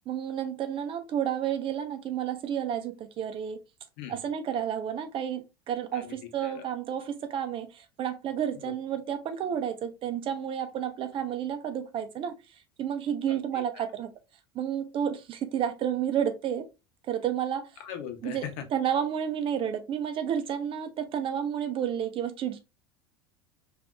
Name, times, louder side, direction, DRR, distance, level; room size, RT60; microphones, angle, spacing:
voice 1, 0.1-3.6 4.1-14.1 14.5-16.7 17.0-17.8 18.2-18.4 18.7-22.6, right 9 dB, 40° right, 0.7 m, -31 dB
voice 2, 17.8-18.6, left 9 dB, 60° left, 0.9 m, -39 dB
3.5 x 2.6 x 2.4 m
hypercardioid pair, 80°, 13 cm